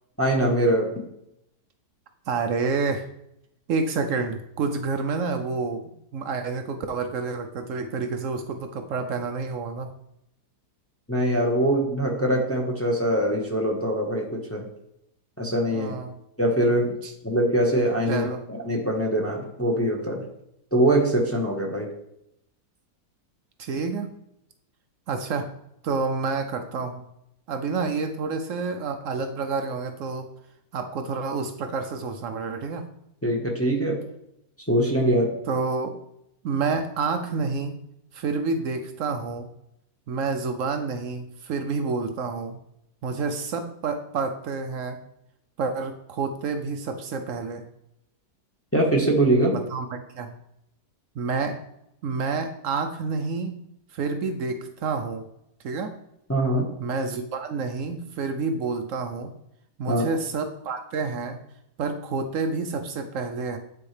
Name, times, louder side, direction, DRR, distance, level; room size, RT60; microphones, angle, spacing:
voice 1, 0.2-0.9 11.1-14.7 15.4-15.9 16.4-16.9 17.2-20.2 20.7-21.9 33.2-34.0 34.7-35.3 48.7-49.5 56.3-56.7 59.9-60.0, right 1 dB, 10° left, -1 dB, 0.8 m, -23 dB
voice 2, 2.3-3.0 3.7-5.8 6.1-9.9 15.7-16.1 17.0-17.1 18.1-18.4 23.6-24.1 25.1-25.5 25.8-27.0 27.5-30.3 30.7-32.9 35.5-35.9 36.4-37.8 38.1-39.5 40.1-42.6 43.0-45.0 45.6-47.6 49.5-50.3 51.2-51.6 52.0-53.6 53.9-55.3 55.6-55.9 56.8-59.3 59.8-61.4 61.8-63.6, right 4 dB, 65° right, 7 dB, 0.8 m, -28 dB
8.9 x 4.3 x 3.3 m, 0.78 s
omnidirectional pair, 1.8 m